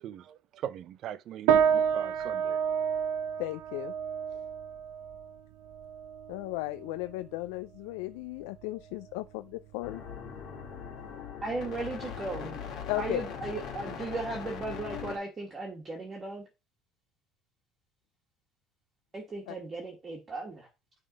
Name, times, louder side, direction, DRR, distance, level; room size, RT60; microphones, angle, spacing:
voice 1, 0.0-2.6, right 10 dB, 50° right, 0.6 m, -40 dB
sound 1, 1.5-11.1, right 8 dB, 85° right, 0.9 m, -31 dB
voice 2, 3.4-3.9 6.3-10.0 12.9-13.2 19.5-19.6, left 20 dB, 90° left, 0.3 m, -35 dB
sound 2, 9.8-15.2, left 7 dB, 50° left, 2.4 m, -40 dB
voice 3, 11.4-12.6 12.9-16.5 19.1-20.7, right 3 dB, 20° right, 1.6 m, -36 dB
8.8 x 3.6 x 5.1 m
cardioid pair, 145°, 0 cm